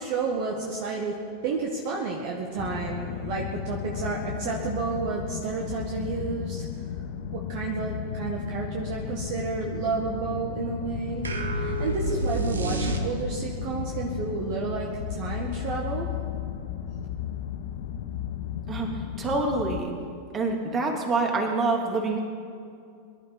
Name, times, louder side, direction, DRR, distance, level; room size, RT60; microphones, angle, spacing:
voice 1, 0.0-6.7 7.3-16.1, right 4 dB, 45° right, 0 dB, 1.7 m, -31 dB
sound 1, 2.6-19.8, left 9 dB, 55° left, 0.9 m, -34 dB
sound 2, 11.2-13.5, right 2 dB, 70° right, 1.4 m, -29 dB
voice 2, 18.7-19.9 20.3-22.2, right 3 dB, 25° right, 1 dB, 2.8 m, -26 dB
23.5 x 11.5 x 4.1 m, 2.3 s
figure-of-eight pair, 90°, 0 cm